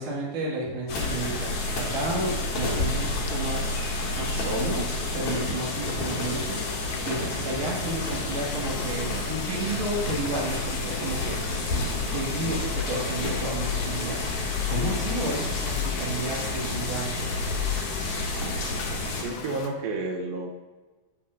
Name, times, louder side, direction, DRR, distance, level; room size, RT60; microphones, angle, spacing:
voice 1, 0.0-3.7 4.1-4.9 5.1-6.6 7.0-11.4 11.7-17.3, right 1 dB, 45° right, -4 dB, 2.4 m, -32 dB
sound 1, 0.9-19.7, left 7 dB, 75° left, 1.9 m, -41 dB
sound 2, 0.9-19.2, left 3 dB, 55° left, 2.8 m, -30 dB
sound 3, 1.9-16.8, right 2 dB, 60° right, 2.4 m, -45 dB
voice 2, 19.2-20.5, right 3 dB, 80° right, 2 dB, 2.6 m, -31 dB
16.5 x 5.8 x 2.6 m, 1.3 s
omnidirectional pair, 4.3 m